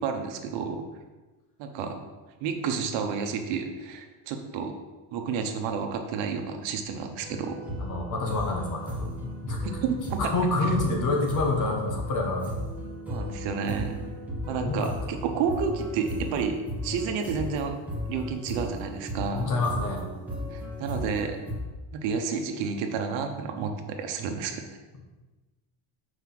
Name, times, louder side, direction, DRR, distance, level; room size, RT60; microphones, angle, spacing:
voice 1, 0.0-0.8 1.6-2.0 2.4-4.7 5.1-7.6 9.6-10.2 13.1-14.0 14.5-17.8 18.1-19.5 20.5-21.4 21.9-24.6, right 6 dB, 70° right, 5 dB, 1.1 m, -30 dB
sound 1, 7.2-21.6, equal, 5° right, 1.2 m, -36 dB
voice 2, 7.8-9.7 10.2-12.5 14.5-14.9 19.3-20.0, left 2 dB, 40° left, 1 dB, 1.4 m, -27 dB
6.8 x 4.8 x 6.0 m, 1.2 s
cardioid pair, 170°, 46 cm